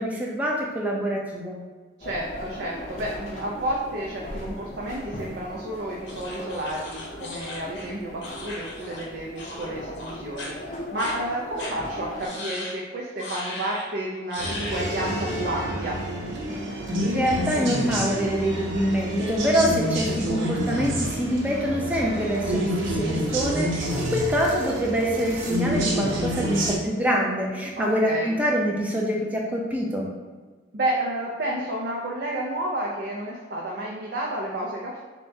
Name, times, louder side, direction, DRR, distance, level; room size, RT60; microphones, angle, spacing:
voice 1, 0.0-1.6 17.1-30.1, equal, 10° right, -2 dB, 0.5 m, -25 dB
sound 1, 2.0-12.3, left 1 dB, 35° left, 0.6 m, -38 dB
voice 2, 2.0-16.0 27.8-28.3 30.7-35.0, right 1 dB, 60° right, -3 dB, 0.5 m, -31 dB
sound 2, 6.1-9.1 9.4-9.7 10.0-10.5 11.0-11.1 11.6-11.7 12.2-12.8 13.2-13.9 14.3-14.9, left 2 dB, 70° left, 0.8 m, -37 dB
sound 3, 14.4-26.8, right 1 dB, 85° right, 0.9 m, -28 dB
6.7 x 2.3 x 2.7 m, 1.4 s
head